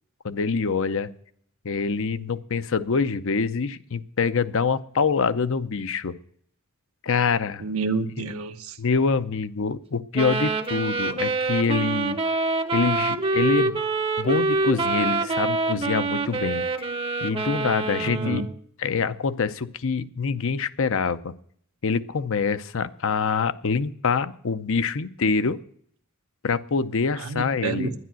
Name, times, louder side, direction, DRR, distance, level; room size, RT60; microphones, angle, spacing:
voice 1, 0.2-1.1 1.6-6.2 7.0-7.6 8.2-8.3 8.8-12.2 12.7-13.8 14.2-16.7 17.2-18.4 18.8-21.3 21.8-25.6 26.4-27.9, left 5 dB, 65° left, 0.7 m, -25 dB
voice 2, 7.6-8.8 18.0-18.5 27.2-27.9, right 3 dB, 80° right, 1.1 m, -29 dB
sound 1, 10.1-18.5, right 3 dB, 25° right, 0.8 m, -26 dB
11.0 x 10.5 x 7.6 m
head